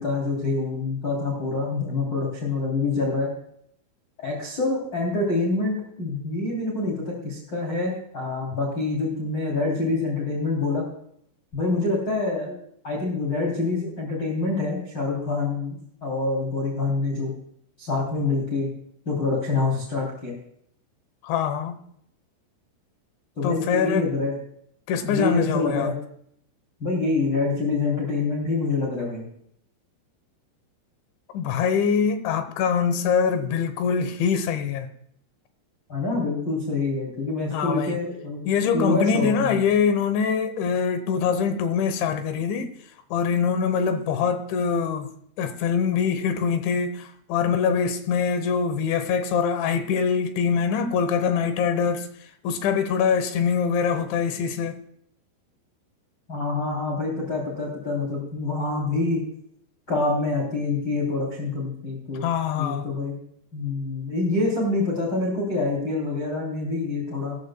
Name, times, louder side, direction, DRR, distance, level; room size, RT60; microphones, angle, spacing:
voice 1, 0.0-3.3 4.2-10.8 11.5-12.5 12.8-15.8 16.0-17.3 17.8-18.7 19.0-20.4 23.4-24.4 25.0-26.0 26.8-29.3 35.9-38.5 38.7-39.6 56.3-59.2 59.9-62.2 62.5-63.1 63.5-67.4, left 3 dB, 25° left, 2.9 m, -26 dB
voice 2, 21.2-21.8 23.4-24.1 24.9-25.9 31.3-34.9 37.5-38.0 38.5-42.7 43.1-45.1 45.4-54.8 62.2-62.9, left 6 dB, 75° left, 3.1 m, -24 dB
16.0 x 14.0 x 2.2 m
omnidirectional pair, 5.9 m